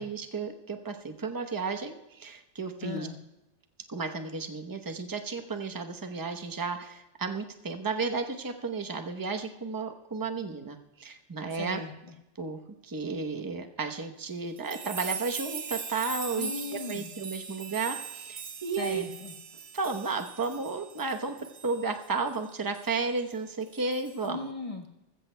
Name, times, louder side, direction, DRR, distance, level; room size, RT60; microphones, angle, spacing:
voice 1, 0.0-3.1 3.9-11.8 12.4-19.0 19.7-21.3 21.6-24.5, right 4 dB, 20° right, 5 dB, 0.8 m, -33 dB
voice 2, 2.8-3.2 11.5-12.1 16.4-17.1 18.8-19.3 24.2-24.9, left 3 dB, 30° left, 2 dB, 1.4 m, -38 dB
sound 1, 14.6-22.4 22.7-22.9 23.7-24.3, right 5 dB, 65° right, 1.1 m, -40 dB
21.0 x 14.5 x 2.2 m, 0.94 s
omnidirectional pair, 1.2 m